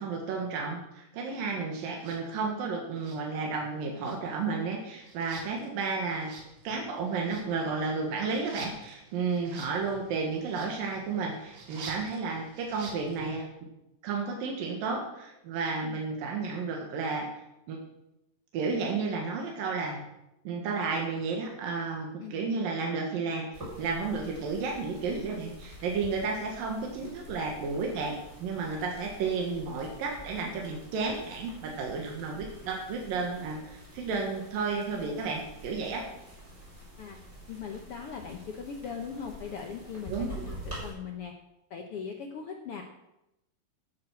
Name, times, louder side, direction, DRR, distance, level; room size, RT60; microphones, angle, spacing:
voice 1, 0.0-6.3 6.6-13.5 14.0-17.3 17.7-17.8 18.5-20.0 20.4-23.5 23.8-36.0 40.1-40.3, right 4 dB, 85° right, 0 dB, 3.3 m, -32 dB
sound 1, 1.9-2.2 2.9-3.7 4.0-13.4, right 3 dB, 65° right, 3.5 m, -49 dB
sound 2, 23.5-40.9, equal, 20° right, 6.3 m, -47 dB
voice 2, 37.5-41.3 41.7-42.8, left 6 dB, 70° left, 3 dB, 1.4 m, -40 dB
13.0 x 8.8 x 6.3 m, 0.88 s
omnidirectional pair, 3.9 m